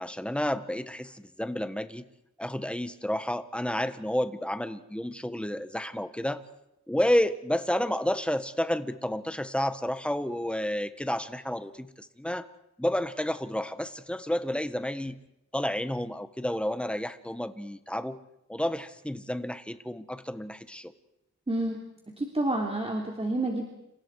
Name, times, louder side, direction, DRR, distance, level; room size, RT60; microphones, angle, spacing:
voice 1, 0.0-2.0 2.4-6.4 6.9-12.5 12.8-15.2 15.5-18.2 18.5-20.9, left 1 dB, 5° left, 10 dB, 1.5 m, -30 dB
voice 2, 21.5-21.8 22.2-23.6, right 1 dB, 20° right, 0 dB, 3.3 m, -29 dB
30.0 x 28.5 x 4.9 m, 0.84 s
wide cardioid pair, 105°, 29 cm